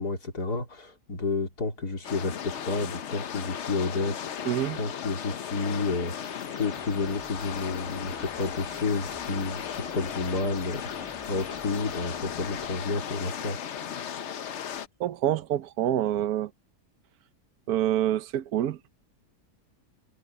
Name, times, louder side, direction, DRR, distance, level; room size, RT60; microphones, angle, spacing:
voice 1, 0.0-13.6, left 3 dB, 75° left, 3.9 m, -31 dB
sound 1, 2.0-14.9, left 8 dB, 55° left, 1.0 m, -36 dB
voice 2, 4.5-4.8 15.0-16.5 17.7-18.9, right 12 dB, 70° right, 1.3 m, -27 dB
sound 2, 6.1-12.9, equal, ahead, 5.6 m, -50 dB
omnidirectional pair, 1.7 m